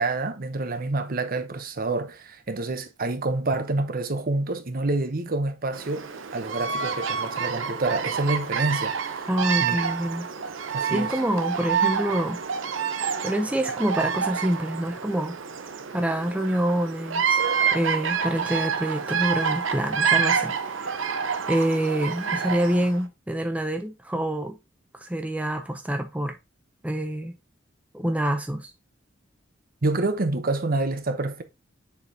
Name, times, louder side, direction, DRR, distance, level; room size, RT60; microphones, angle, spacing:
voice 1, 0.0-9.3 9.6-9.8 10.7-11.1 29.8-31.4, right 2 dB, 50° right, 0.9 m, -27 dB
Bird vocalization bird call bird song, 5.7-23.0, right 6 dB, 85° right, 0.8 m, -28 dB
voice 2, 9.3-10.3 10.9-12.4 13.2-15.4 15.9-17.4 17.7-21.2 21.5-24.6 25.0-26.4 26.8-27.4 27.9-28.7, right 1 dB, 5° right, 0.6 m, -26 dB
6.8 x 5.1 x 2.8 m
head